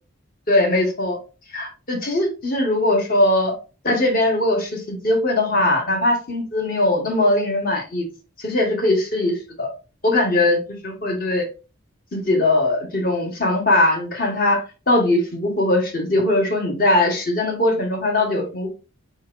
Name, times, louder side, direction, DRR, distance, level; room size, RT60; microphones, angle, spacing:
voice 1, 0.5-1.2 1.5-3.5 3.8-8.1 8.4-9.7 10.0-11.4 12.1-18.7, left 1 dB, 40° left, 3 dB, 1.2 m, -20 dB
4.6 x 4.4 x 2.4 m, 0.33 s
head